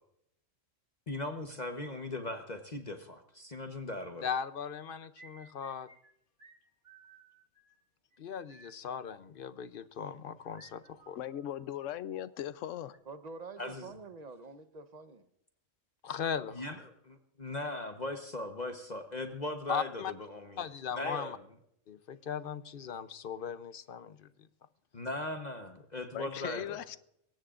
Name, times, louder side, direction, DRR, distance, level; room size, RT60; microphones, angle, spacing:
voice 1, 1.1-4.3 13.6-13.9 16.5-20.6 20.9-21.4 24.9-26.8, left 2 dB, 35° left, 1.1 m, -39 dB
voice 2, 4.2-5.9 8.2-11.2 16.0-16.6 19.7-20.1 20.6-21.4 21.9-24.3, left 7 dB, 50° left, 0.8 m, -38 dB
sound 1, 4.8-6.1 6.4-6.6 6.8-7.8 8.1-8.2 8.5-8.7 10.5-11.9 12.2-13.0, right 4 dB, 65° right, 2.5 m, -59 dB
voice 3, 11.2-13.0 26.1-27.0, left 11 dB, 75° left, 1.0 m, -38 dB
voice 4, 13.1-15.2, right 4 dB, 35° right, 1.0 m, -47 dB
22.5 x 18.0 x 2.5 m
omnidirectional pair, 1.3 m